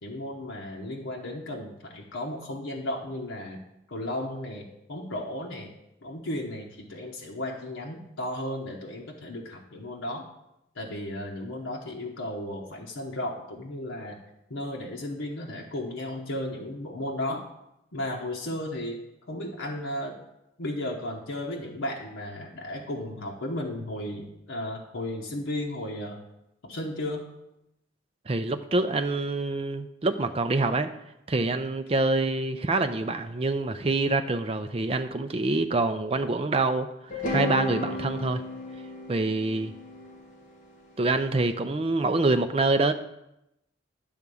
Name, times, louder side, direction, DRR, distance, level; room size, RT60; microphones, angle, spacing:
voice 1, 0.0-3.6 3.9-5.7 6.0-10.3 10.7-14.2 14.5-17.4 17.9-19.0 19.3-20.2 20.6-26.2 26.6-27.3, left 1 dB, 80° left, -2 dB, 1.0 m, -34 dB
voice 2, 28.3-30.9 31.3-36.9 37.1-38.4 39.1-39.7 41.0-42.9, right 2 dB, 30° right, 8 dB, 0.4 m, -26 dB
sound 1, 37.1-41.3, left 2 dB, 40° left, 1.7 m, -34 dB
10.5 x 3.6 x 6.9 m, 0.87 s
head